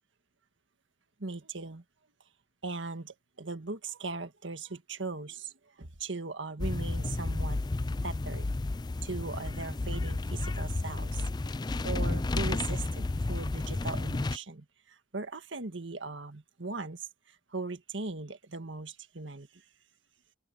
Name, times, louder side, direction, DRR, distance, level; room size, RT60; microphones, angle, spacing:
voice 1, 1.2-1.8 2.6-7.6 8.0-8.4 9.0-11.2 11.8-19.6, right 3 dB, 80° right, 1.7 m, -39 dB
sound 1, 6.6-14.4, left 2 dB, 20° left, 0.4 m, -32 dB
open air
head